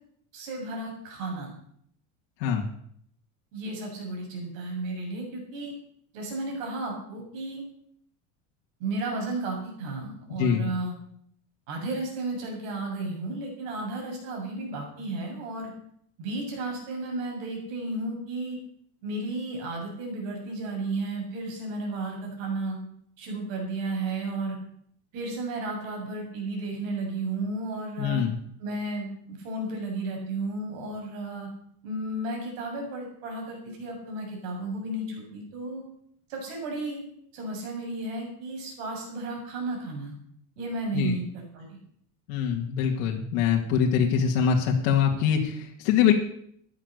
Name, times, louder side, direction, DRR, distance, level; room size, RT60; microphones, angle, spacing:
voice 1, 0.3-1.5 3.5-5.7 6.1-7.6 8.8-10.9 11.7-15.7 16.2-18.6 19.0-22.8 23.2-24.6 25.1-28.2 28.6-31.5 31.8-35.8 36.3-37.1 37.3-40.1 40.6-41.8, right 2 dB, 70° right, 0 dB, 7.4 m, -33 dB
voice 2, 28.0-28.4 40.9-41.1 42.3-46.1, left 7 dB, 65° left, 0 dB, 2.3 m, -24 dB
15.0 x 10.5 x 6.7 m, 0.67 s
cardioid pair, 170°, 40 cm